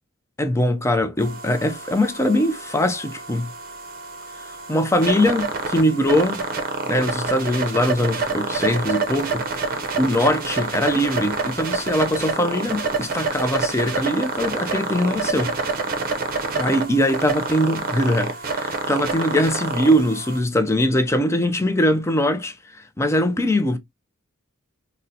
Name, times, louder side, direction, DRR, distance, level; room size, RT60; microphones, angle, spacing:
voice 1, 0.4-3.5 4.7-6.4 6.9-9.4 10.0-15.5 16.6-23.8, left 1 dB, 15° left, 0.4 m, -21 dB
sound 1, 1.2-20.4, right 4 dB, 45° right, 0.6 m, -27 dB
3.9 x 2.1 x 2.6 m
head